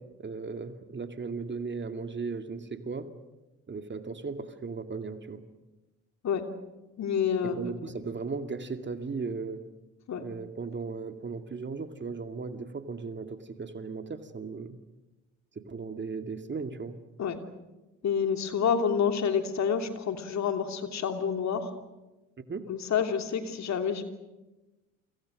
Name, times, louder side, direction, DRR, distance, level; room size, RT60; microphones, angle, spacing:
voice 1, 0.2-3.1 3.7-5.4 7.4-9.6 10.2-14.8 15.6-17.0 22.5-22.7, right 4 dB, 30° right, 7 dB, 2.4 m, -36 dB
voice 2, 7.0-7.5 10.1-10.2 17.2-17.4 18.0-21.7 22.7-24.0, left 7 dB, 45° left, 6 dB, 3.1 m, -28 dB
30.0 x 25.0 x 6.5 m, 1.1 s
hypercardioid pair, 60°, 37 cm